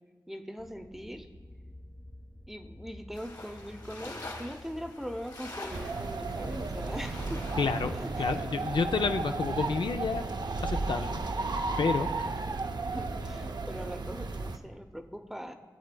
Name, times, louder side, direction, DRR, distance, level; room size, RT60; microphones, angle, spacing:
voice 1, 0.3-1.3 2.5-7.5 8.0-8.4 12.9-15.5, equal, 5° right, 6 dB, 0.6 m, -41 dB
sound 1, 0.6-14.6, left 1 dB, 40° left, 1.0 m, -51 dB
sound 2, 3.1-8.4, left 2 dB, 60° left, 1.5 m, -46 dB
sound 3, 5.7-14.6, right 3 dB, 65° right, 0.5 m, -34 dB
voice 2, 7.6-10.2 10.6-11.2 11.8-12.1, left 5 dB, 85° left, 7 dB, 0.4 m, -30 dB
17.5 x 7.7 x 2.2 m, 1.5 s
wide cardioid pair, 65°, 8 cm